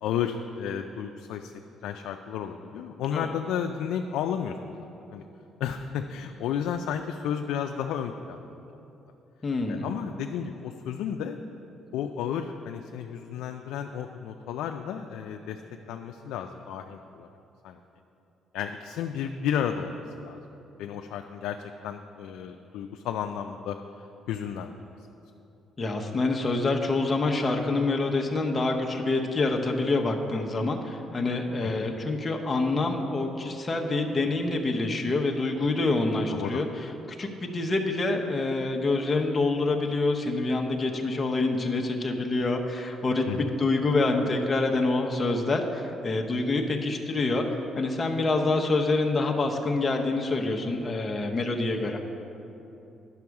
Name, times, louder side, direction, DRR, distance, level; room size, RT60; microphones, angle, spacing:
voice 1, 0.0-1.5 1.8-5.2 5.6-8.5 9.7-11.4 11.9-15.6 15.9-17.3 17.6-17.8 18.5-20.4 20.8-21.6 21.8-23.8 24.3-24.7 31.6-31.9 36.3-36.6 43.3-43.5, left 8 dB, 85° left, 4 dB, 0.3 m, -32 dB
voice 2, 9.4-9.8 25.8-36.7 37.2-47.5 47.8-52.1, left 3 dB, 25° left, 1 dB, 0.8 m, -26 dB
10.5 x 6.1 x 4.7 m, 2.9 s
cardioid pair, 110°, 0 cm